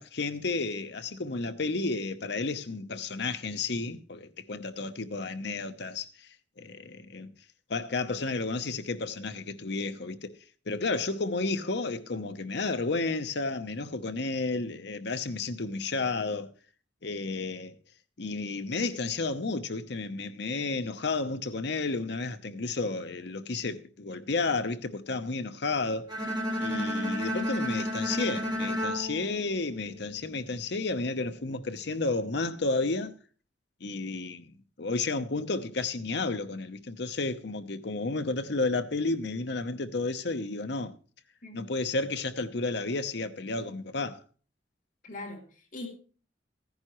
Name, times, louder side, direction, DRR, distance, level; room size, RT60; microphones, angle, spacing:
voice 1, 0.0-6.3 6.6-7.3 7.7-10.3 10.7-16.5 17.0-17.8 18.2-26.1 26.6-33.1 33.8-34.5 34.8-40.9 41.5-44.2, left 3 dB, 60° left, 0.9 m, -32 dB
Bowed string instrument, 26.1-30.2, equal, 20° right, 2.1 m, -32 dB
voice 2, 45.0-45.9, left 2 dB, 45° left, 3.0 m, -41 dB
15.0 x 10.5 x 3.1 m
head